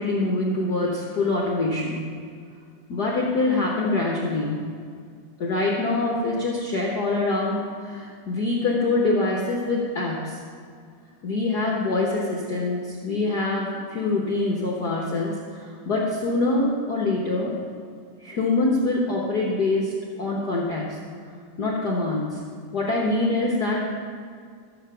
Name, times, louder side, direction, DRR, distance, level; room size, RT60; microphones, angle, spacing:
voice 1, 0.0-2.0 2.9-4.6 5.4-10.4 11.2-17.5 18.2-21.0 21.6-22.4 22.7-23.8, left 2 dB, 60° left, -3 dB, 1.0 m, -25 dB
14.0 x 6.9 x 5.6 m, 2.1 s
omnidirectional pair, 3.5 m